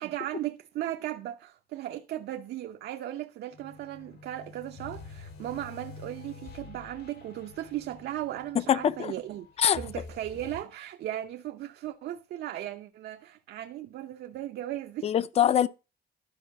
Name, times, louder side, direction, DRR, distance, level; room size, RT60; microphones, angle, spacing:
voice 1, 0.0-9.5 9.8-15.1, right 13 dB, 80° right, 0.8 m, -37 dB
sound 1, 3.5-10.6, left 4 dB, 85° left, 2.9 m, -47 dB
voice 2, 8.5-9.1 9.6-9.8 15.0-15.7, left 9 dB, 40° left, 0.5 m, -23 dB
12.5 x 5.6 x 5.8 m
cardioid pair, 175°, 17 cm